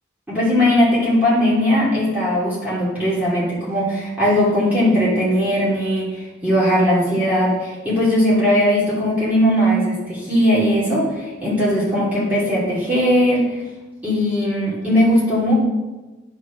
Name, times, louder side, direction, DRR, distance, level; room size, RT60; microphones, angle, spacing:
voice 1, 0.3-13.6 14.0-15.5, equal, 10° right, -9 dB, 2.6 m, -19 dB
9.6 x 4.8 x 6.0 m, 1.2 s
head